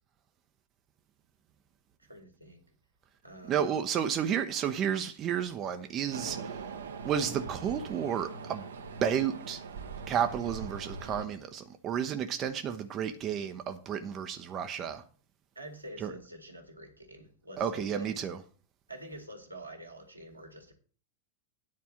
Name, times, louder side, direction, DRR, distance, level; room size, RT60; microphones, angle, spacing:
voice 1, 2.0-2.6 3.2-3.7 15.6-18.3 18.9-20.7, right 1 dB, 85° right, 2.2 m, -47 dB
voice 2, 3.5-6.5 7.0-8.6 9.0-9.6 10.1-15.0 16.0-16.1 17.6-18.4, right 8 dB, 30° right, 0.8 m, -31 dB
sound 1, 6.1-11.3, right 5 dB, 65° right, 1.0 m, -41 dB
9.7 x 4.6 x 7.7 m
figure-of-eight pair, 90°, 0 cm